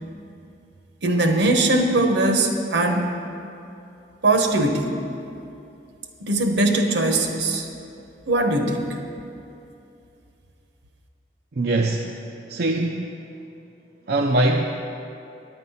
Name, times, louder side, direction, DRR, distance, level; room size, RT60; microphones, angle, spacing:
voice 1, 1.0-3.2 4.2-4.9 6.2-7.7 8.3-8.9, right 2 dB, 75° right, 4 dB, 1.0 m, -20 dB
voice 2, 11.6-12.2 12.5-13.1 14.1-14.6, right 2 dB, 60° right, 1 dB, 0.5 m, -22 dB
9.4 x 9.1 x 5.6 m, 2.6 s
head